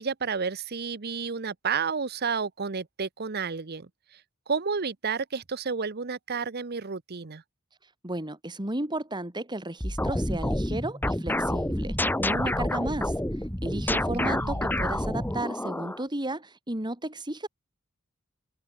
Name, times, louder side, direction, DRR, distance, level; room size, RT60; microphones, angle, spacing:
voice 1, 0.0-4.2 4.5-7.4 13.9-14.7, right 5 dB, 50° right, 0.9 m, -31 dB
voice 2, 7.8-17.5, right 1 dB, 20° right, 2.5 m, -34 dB
sound 1, 9.8-16.0, left 1 dB, 10° left, 1.7 m, -28 dB
open air
head